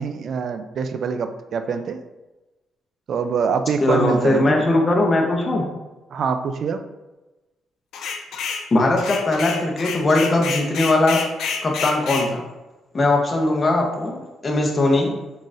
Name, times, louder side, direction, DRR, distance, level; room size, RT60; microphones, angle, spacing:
voice 1, 0.0-2.0 3.1-4.7 6.1-6.8, right 6 dB, 60° right, 9 dB, 0.3 m, -24 dB
voice 2, 3.8-5.6 8.7-11.2 11.6-12.4 12.9-15.1, left 2 dB, 30° left, 1 dB, 0.9 m, -19 dB
sound 1, 7.9-8.7 9.0-12.3, left 6 dB, 75° left, 0.5 m, -28 dB
3.9 x 3.8 x 2.5 m, 1.1 s
cardioid pair, 90°, 0 cm